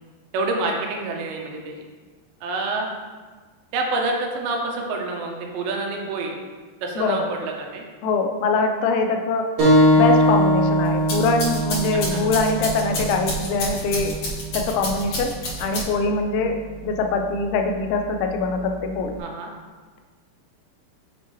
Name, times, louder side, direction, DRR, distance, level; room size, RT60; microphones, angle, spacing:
voice 1, 0.3-1.8 2.4-2.9 3.7-6.4 6.8-7.8 11.9-12.2 19.2-19.5, right 2 dB, 80° right, 1 dB, 2.9 m, -27 dB
voice 2, 7.0-7.3 8.0-9.4 9.9-14.2 14.5-15.3 15.6-16.6 16.8-19.2, left 3 dB, 85° left, 4 dB, 2.9 m, -23 dB
sound 1, 9.6-14.7, equal, 45° right, 2.6 m, -21 dB
sound 2, 10.8-16.2, left 1 dB, 55° left, 2.3 m, -30 dB
7.0 x 6.2 x 3.0 m, 1.4 s
omnidirectional pair, 5.3 m